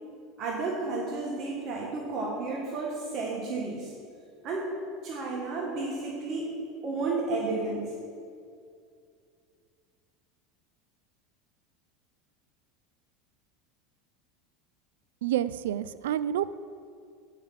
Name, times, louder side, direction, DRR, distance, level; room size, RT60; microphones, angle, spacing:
voice 1, 0.4-3.9 4.4-4.7 5.0-6.6 6.8-7.9, right 3 dB, 45° right, -2 dB, 1.4 m, -32 dB
voice 2, 15.2-16.6, right 11 dB, 90° right, 16 dB, 0.3 m, -29 dB
7.5 x 5.7 x 7.4 m, 2.3 s
supercardioid pair, 120°, 0 cm